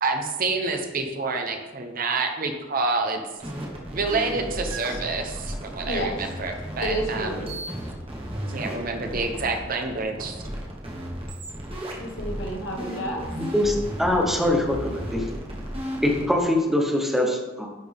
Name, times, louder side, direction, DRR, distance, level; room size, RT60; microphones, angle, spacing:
voice 1, 0.0-3.2 3.9-7.5 8.5-10.4, right 3 dB, 45° right, 4 dB, 0.8 m, -28 dB
sound 1, 3.4-16.4, equal, 30° right, 1.4 m, -34 dB
voice 2, 6.8-7.6 12.0-13.2, equal, 80° left, 1 dB, 1.4 m, -30 dB
voice 3, 13.3-15.2 16.0-17.7, left 1 dB, ahead, 1 dB, 0.9 m, -23 dB
10.5 x 4.2 x 3.5 m, 1.2 s
head